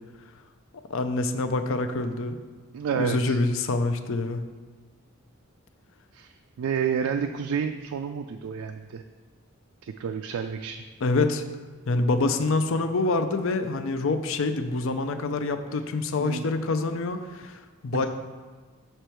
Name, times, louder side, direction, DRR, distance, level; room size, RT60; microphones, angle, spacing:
voice 1, 0.9-2.4 2.9-4.4 11.0-11.4 11.9-18.1, left 3 dB, 65° left, 8 dB, 0.5 m, -26 dB
voice 2, 2.7-3.4 6.1-9.0 9.8-10.8 16.2-16.5 17.9-18.1, right 7 dB, 85° right, 6 dB, 0.3 m, -30 dB
6.7 x 4.5 x 4.5 m, 1.4 s
head